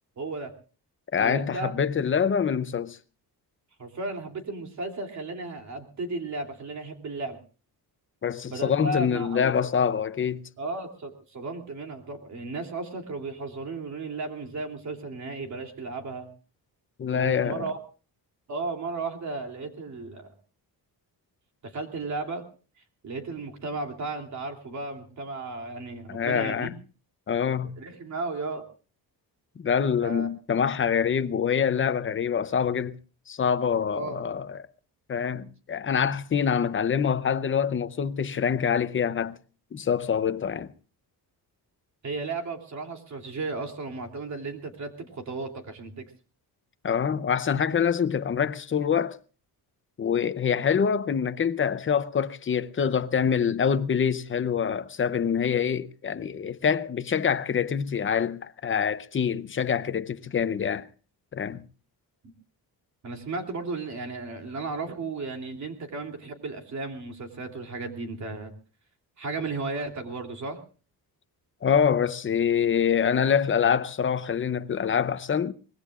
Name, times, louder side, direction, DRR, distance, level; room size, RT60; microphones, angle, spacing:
voice 1, 0.2-0.5 1.2-1.7 3.8-7.4 8.5-9.5 10.6-16.3 17.1-17.8 18.5-20.3 21.6-22.4 23.0-26.7 27.8-28.7 30.0-30.3 33.9-34.2 42.0-46.0 63.0-68.5 69.2-70.6, right 3 dB, 45° right, 3.0 m, -34 dB
voice 2, 1.1-3.0 8.2-10.4 17.0-17.7 26.1-26.7 27.3-27.7 29.6-33.0 33.3-34.7 35.1-39.4 39.7-40.7 46.8-49.2 50.0-60.9 61.3-61.6 71.6-75.5, left 7 dB, 30° left, 0.7 m, -25 dB
24.5 x 20.5 x 2.4 m
wide cardioid pair, 175°, 40 cm